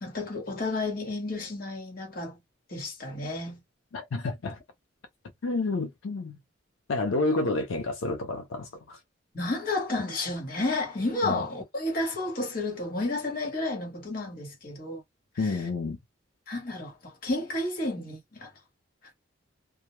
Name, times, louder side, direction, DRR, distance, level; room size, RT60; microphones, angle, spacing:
voice 1, 0.0-2.4 2.7-3.6 9.3-15.0 15.4-15.5 16.5-18.5, left 2 dB, 45° left, 1.1 m, -31 dB
voice 2, 3.9-4.6 5.4-6.4 6.9-9.0 11.2-11.4 15.4-16.0, left 3 dB, 90° left, 0.5 m, -29 dB
2.2 x 2.1 x 3.0 m
head